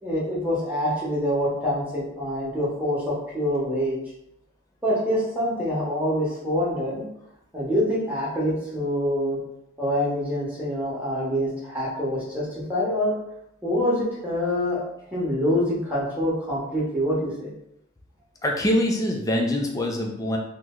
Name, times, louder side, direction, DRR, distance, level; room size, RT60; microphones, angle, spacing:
voice 1, 0.0-4.0 4.8-7.0 7.5-9.4 9.8-13.1 13.6-14.8 15.1-17.5, equal, 5° right, -7 dB, 1.0 m, -25 dB
voice 2, 18.4-20.4, left 1 dB, 15° left, 0 dB, 0.4 m, -24 dB
3.0 x 2.1 x 3.6 m, 0.81 s
head